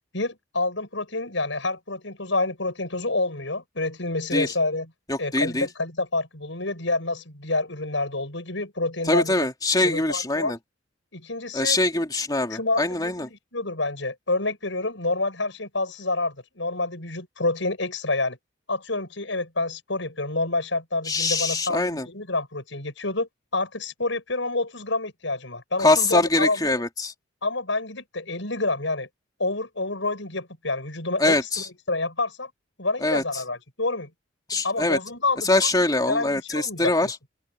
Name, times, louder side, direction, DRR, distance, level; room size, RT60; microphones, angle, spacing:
voice 1, 0.1-4.9 5.2-9.5 9.8-10.5 11.1-11.8 12.5-18.4 18.7-26.6 27.4-29.1 29.4-31.4 31.9-32.5 32.8-34.1 34.6-35.7 36.1-37.1, left 2 dB, 75° left, 7.6 m, -28 dB
voice 2, 5.1-5.7 9.1-10.6 11.5-13.3 21.1-22.1 25.8-27.1 31.2-31.7 33.0-33.2 34.5-35.0 35.4-37.1, left 2 dB, 20° left, 2.9 m, -23 dB
open air
head